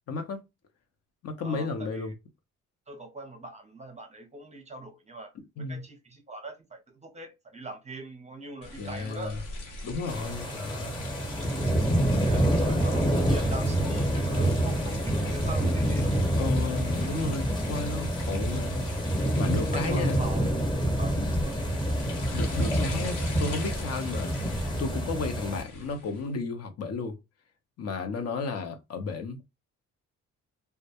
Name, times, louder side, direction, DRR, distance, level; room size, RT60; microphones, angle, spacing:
voice 1, 0.1-0.4 1.2-2.1 5.6-5.8 8.8-9.4 9.8-11.1 16.4-18.9 19.4-20.2 22.3-24.3 24.8-27.2 27.8-29.5, left 4 dB, 55° left, 0.7 m, -33 dB
voice 2, 1.4-2.1 2.9-9.4 12.0-16.6 19.7-20.5 21.0-21.6, right 2 dB, 25° right, 0.6 m, -42 dB
Fountain in Rome, 8.6-26.3, left 2 dB, 75° left, 1.3 m, -42 dB
sound 1, 10.1-25.6, right 1 dB, 15° left, 0.9 m, -27 dB
2.2 x 2.1 x 2.7 m
cardioid pair, 90°, 30 cm